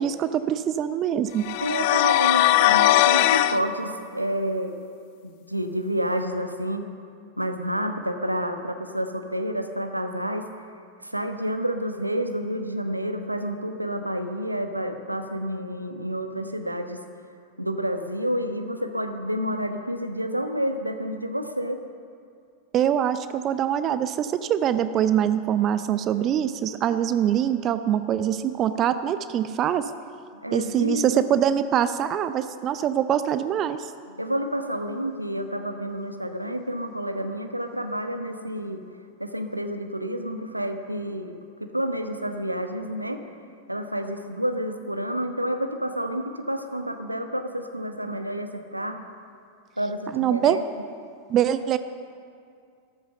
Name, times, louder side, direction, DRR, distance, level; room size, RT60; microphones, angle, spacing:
voice 1, 0.0-1.5 22.7-29.9 30.5-33.9 50.1-50.6 51.3-51.8, right 10 dB, 30° right, 12 dB, 0.5 m, -24 dB
sound 1, 1.4-3.6, left 15 dB, 45° left, 0.4 m, -19 dB
voice 2, 1.6-4.7 5.2-6.9 7.4-10.5 11.0-17.0 17.6-21.8 30.4-31.2 34.2-38.8 39.2-43.2 43.7-49.0 49.8-50.6, equal, 85° right, 6 dB, 1.1 m, -29 dB
13.5 x 13.5 x 6.7 m, 2.3 s
figure-of-eight pair, 90°, 0 cm